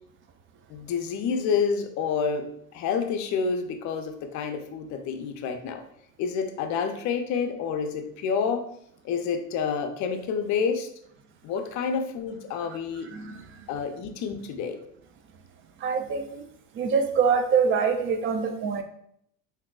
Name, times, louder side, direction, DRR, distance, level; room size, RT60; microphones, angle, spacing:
voice 1, 0.7-5.8 6.2-8.7 9.0-10.9 11.4-13.1 13.7-14.8, left 6 dB, 45° left, 6 dB, 0.5 m, -28 dB
voice 2, 13.1-13.7 15.8-16.4 16.8-18.8, right 6 dB, 30° right, 7 dB, 0.4 m, -25 dB
3.6 x 2.7 x 2.3 m, 0.70 s
hypercardioid pair, 90°, 41 cm